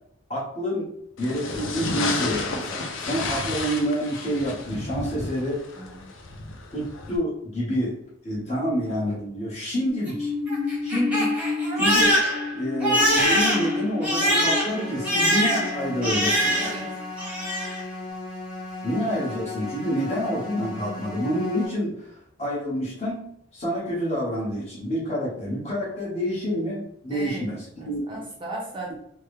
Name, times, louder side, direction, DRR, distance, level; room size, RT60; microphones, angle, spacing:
voice 1, 0.3-0.9 1.2-5.6 6.7-8.0 8.2-10.3 10.8-11.3 11.7-12.2 12.5-16.8 18.8-23.2 23.5-28.0, equal, 35° left, -6 dB, 1.4 m, -28 dB
sound 1, 1.2-7.2, left 3 dB, 75° left, 0.5 m, -32 dB
voice 2, 5.7-6.1 16.6-17.0 27.1-28.9, right 1 dB, 25° right, -3 dB, 0.6 m, -37 dB
Crying sobbing, 9.9-16.9 17.2-17.8, equal, 5° right, 1.0 m, -23 dB
sound 2, 14.6-21.7, left 3 dB, 55° left, 1.3 m, -36 dB
3.4 x 2.1 x 3.3 m, 0.72 s
head